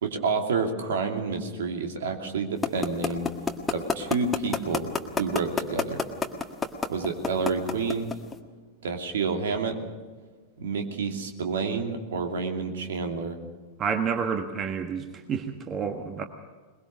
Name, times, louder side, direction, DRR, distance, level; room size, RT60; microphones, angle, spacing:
voice 1, 0.0-3.3 3.7-4.9 5.2-6.0 6.9-8.1 8.8-9.8 10.6-13.4, right 4 dB, 60° right, 4 dB, 2.7 m, -29 dB
sound 1, 2.6-8.3, left 4 dB, 15° left, 1.7 m, -25 dB
voice 2, 13.8-16.2, right 6 dB, 25° right, 7 dB, 1.5 m, -29 dB
22.0 x 22.0 x 6.5 m, 1.4 s
figure-of-eight pair, 90°, 0 cm